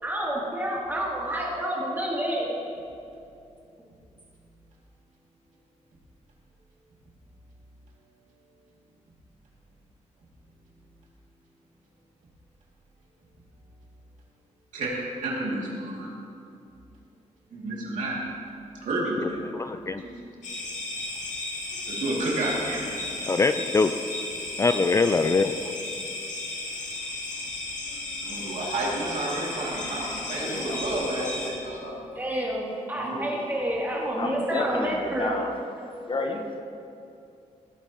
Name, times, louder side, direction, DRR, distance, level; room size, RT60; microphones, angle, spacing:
voice 1, 0.0-2.6 32.1-35.4, right 1 dB, 15° right, -5 dB, 2.9 m, -29 dB
voice 2, 15.2-16.1 17.5-18.1 18.8-19.4 20.0-20.1 21.9-23.2 28.2-31.9 32.9-33.3, right 2 dB, 85° right, -4 dB, 2.7 m, -30 dB
voice 3, 19.2-20.0 23.3-23.9 24.6-25.7, left 4 dB, 25° left, 9 dB, 0.3 m, -23 dB
sound 1, 20.4-31.5, left 2 dB, 80° left, 2.1 m, -34 dB
voice 4, 30.3-30.8 31.4-31.5 33.9-35.5 36.1-36.6, left 2 dB, 40° left, 3 dB, 1.1 m, -31 dB
16.5 x 9.3 x 3.0 m, 2.6 s
cardioid pair, 100°, 13 cm